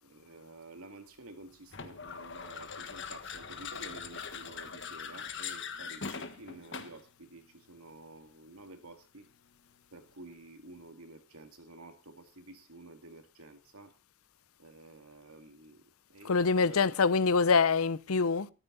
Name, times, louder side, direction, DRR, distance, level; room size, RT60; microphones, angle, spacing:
voice 1, 0.0-9.3 9.9-14.0 14.6-16.8, right 2 dB, 90° right, 2.3 m, -51 dB
sound 1, 1.7-7.1, left 6 dB, 55° left, 1.5 m, -41 dB
voice 2, 16.2-18.5, left 4 dB, 80° left, 0.7 m, -25 dB
13.5 x 13.5 x 4.0 m
head